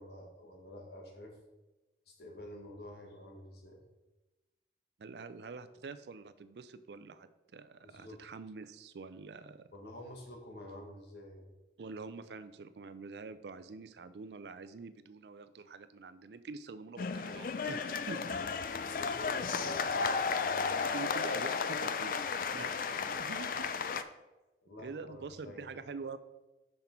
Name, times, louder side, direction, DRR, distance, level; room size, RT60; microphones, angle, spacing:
voice 1, 0.0-1.3 2.1-3.8 7.8-8.2 9.7-11.5 18.1-18.5 19.0-20.8 22.5-22.6 23.1-23.2 24.6-25.7, left 1 dB, 65° left, 1 dB, 1.5 m, -50 dB
voice 2, 5.0-9.6 11.8-18.2 19.6-19.8 20.7-22.2 22.5-23.7 24.8-26.2, right 4 dB, 70° right, 13 dB, 0.4 m, -46 dB
sound 1, 17.0-24.0, left 5 dB, 50° left, 0.4 m, -34 dB
5.9 x 5.4 x 4.4 m, 1.1 s
head